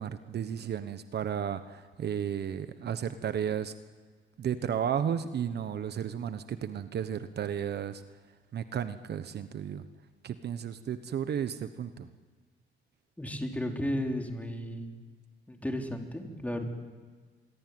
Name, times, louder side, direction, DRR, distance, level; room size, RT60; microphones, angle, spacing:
voice 1, 0.0-3.7 4.4-8.0 8.5-9.8 10.2-12.1, right 8 dB, 55° right, 11 dB, 1.1 m, -33 dB
voice 2, 13.2-14.9 15.5-16.7, equal, 5° left, 3 dB, 3.7 m, -34 dB
27.0 x 23.0 x 9.4 m, 1.5 s
cardioid pair, 115°, 20 cm